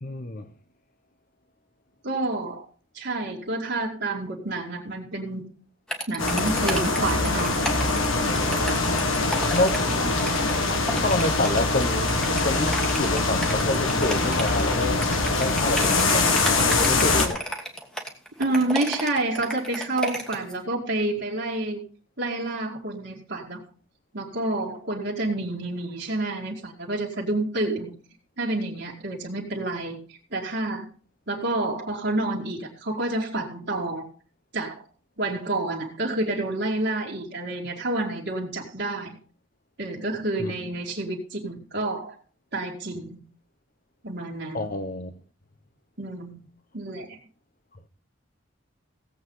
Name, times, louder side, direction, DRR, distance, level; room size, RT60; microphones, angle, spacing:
voice 1, 0.0-0.5 9.5-9.8 10.9-15.1 15.3-16.3 16.6-17.5 40.4-40.5 44.5-45.1, left 2 dB, 45° left, 0.9 m, -28 dB
voice 2, 2.0-2.7 2.9-5.4 6.1-7.6 18.4-21.8 22.2-23.6 24.1-27.9 28.4-30.9 31.3-34.1 34.5-34.8 35.2-39.2 39.8-42.2 42.5-43.2 44.0-44.7 46.0-46.4 46.7-47.2, right 2 dB, 55° right, 2.2 m, -29 dB
sound 1, 5.9-20.5, right 1 dB, 5° left, 1.5 m, -33 dB
sound 2, 6.2-17.3, left 3 dB, 80° left, 1.8 m, -23 dB
17.0 x 7.9 x 3.9 m
head